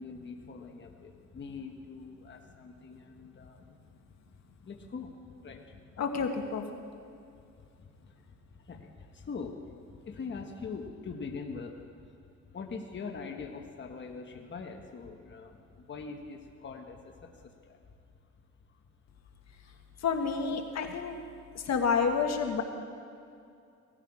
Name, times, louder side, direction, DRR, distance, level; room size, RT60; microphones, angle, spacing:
voice 1, 0.0-3.7 4.6-5.1 5.4-5.8 7.8-8.2 8.5-11.8 12.5-17.8 19.6-19.7, left 4 dB, 40° left, 3 dB, 1.3 m, -43 dB
voice 2, 6.0-6.6 20.0-21.2 21.6-22.6, left 5 dB, 60° left, 5 dB, 1.5 m, -29 dB
18.0 x 14.0 x 4.8 m, 2.5 s
cardioid pair, 90°, 30 cm